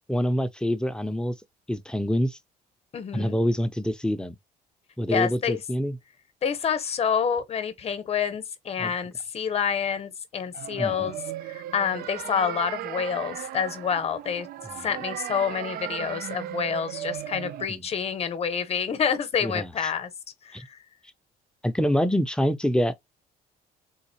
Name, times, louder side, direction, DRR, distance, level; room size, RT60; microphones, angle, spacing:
voice 1, 0.1-1.3 1.7-2.4 3.1-4.4 5.0-6.0 8.8-8.9 10.8-11.1 17.7-17.8 19.4-19.9 20.5-20.6 21.6-22.9, equal, 5° left, 0.4 m, -26 dB
voice 2, 2.9-3.4 5.1-5.6 6.4-11.2 11.5-14.5 14.8-20.1 20.4-20.8, left 7 dB, 35° left, 0.7 m, -28 dB
sound 1, 10.5-17.7, right 12 dB, 65° right, 0.4 m, -36 dB
3.9 x 2.4 x 2.7 m
cardioid pair, 110°, 17 cm